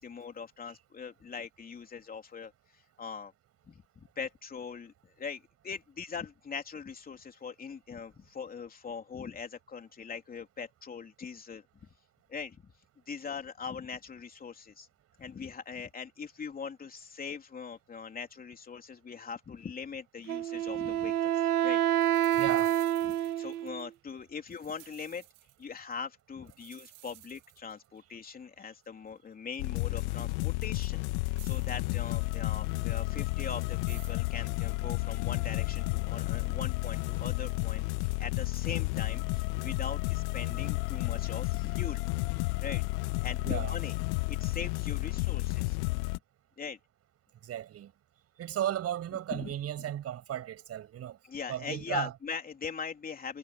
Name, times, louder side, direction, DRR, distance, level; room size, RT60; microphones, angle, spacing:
voice 1, 0.0-3.3 3.7-11.9 12.3-12.6 13.1-14.9 15.2-21.8 22.3-22.4 23.0-25.3 25.6-42.0 42.3-42.8 43.2-44.0 44.3-45.8 46.1-46.2 46.6-46.8 49.3-49.5 51.2-53.4, left 6 dB, 20° left, 3.5 m, -41 dB
Wind instrument woodwind instrument, 20.3-23.9, right 12 dB, 75° right, 1.0 m, -28 dB
sound 1, 21.6-21.7 22.0-23.9 24.3-25.9 26.5-28.0 28.8-28.9 29.5-29.6 30.3-30.4 31.4-32.6 33.9-34.3, right 25 dB, 55° right, 7.5 m, -55 dB
voice 2, 22.4-22.7 43.4-43.7 47.4-47.9 48.4-51.2 51.5-52.1, right 11 dB, 30° right, 8.0 m, -35 dB
sound 2, 29.6-46.2, left 27 dB, 50° left, 1.8 m, -32 dB
hypercardioid pair, 95°, 44 cm